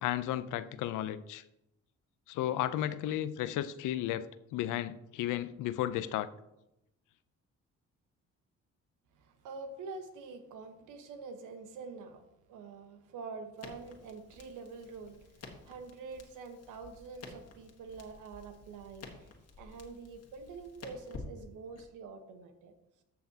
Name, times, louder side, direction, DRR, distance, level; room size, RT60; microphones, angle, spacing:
voice 1, 0.0-1.4 2.3-6.3, left 12 dB, 85° left, 14 dB, 0.5 m, -34 dB
voice 2, 9.2-12.2 12.5-19.3 19.6-22.7, right 4 dB, 90° right, 7 dB, 1.2 m, -46 dB
Crackle, 13.6-21.9, left 4 dB, 55° left, 1.6 m, -52 dB
14.0 x 5.8 x 2.8 m, 0.87 s
cardioid pair, 90°, 30 cm